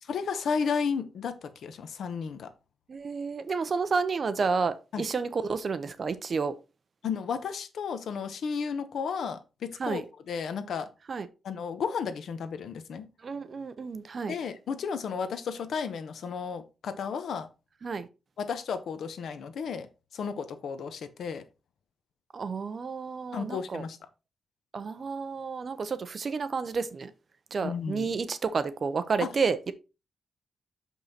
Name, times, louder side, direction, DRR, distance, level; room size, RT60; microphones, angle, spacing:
voice 1, 0.1-2.5 4.9-5.0 7.0-10.9 11.4-13.1 14.3-17.5 18.4-19.9 20.1-21.4 23.3-24.0 27.6-28.1 29.2-29.3, left 6 dB, 70° left, 0.9 m, -33 dB
voice 2, 2.9-6.5 9.8-10.0 11.1-11.3 13.2-14.3 17.8-18.1 22.3-23.8 24.7-27.1 27.5-29.7, right 5 dB, 40° right, 0.6 m, -30 dB
6.4 x 5.5 x 4.2 m
wide cardioid pair, 165°, 0 cm